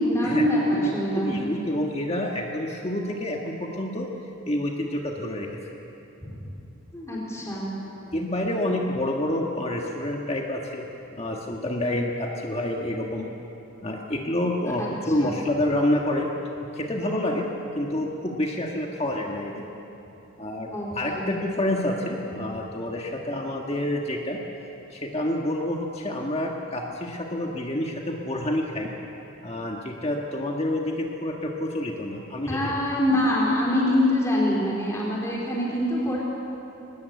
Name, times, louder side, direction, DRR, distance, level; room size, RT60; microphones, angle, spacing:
voice 1, 0.1-1.4 6.2-6.4 6.9-7.7 14.8-14.9 15.2-15.3 20.7-21.3 32.4-36.2, left 1 dB, 15° left, -5 dB, 4.0 m, -24 dB
voice 2, 0.7-4.1 4.5-5.5 8.1-10.9 11.1-13.3 13.8-16.3 16.6-17.5 17.7-19.6 20.4-24.4 24.9-28.9 29.4-32.6, left 1 dB, 30° left, 0 dB, 1.6 m, -28 dB
21.5 x 20.0 x 8.3 m, 3.0 s
head